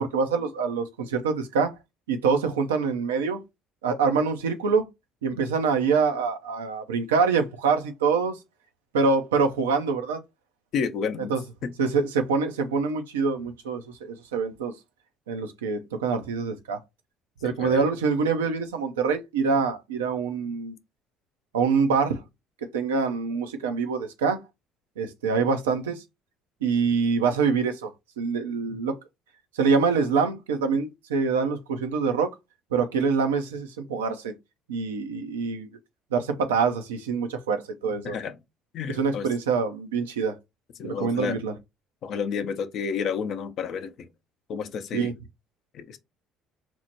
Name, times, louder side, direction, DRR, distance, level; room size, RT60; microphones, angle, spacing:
voice 1, 0.0-1.7 2.1-3.4 3.8-4.8 5.2-8.4 8.9-10.2 11.3-11.4 11.8-14.7 15.3-16.8 17.4-20.8 21.5-22.2 22.7-24.4 25.0-26.0 26.6-27.9 28.2-29.0 29.5-32.3 32.7-34.3 34.7-35.7 36.1-38.2 39.0-40.3 40.8-41.5 44.9-45.1, right 5 dB, 85° right, 0.5 m, -25 dB
voice 2, 10.7-11.3 11.6-11.7 17.4-17.9 38.0-38.4 38.7-39.3 40.8-41.4 42.0-44.1 44.5-45.1 45.7-46.0, left 6 dB, 60° left, 0.6 m, -31 dB
4.3 x 2.1 x 2.8 m
hypercardioid pair, 60°, 0 cm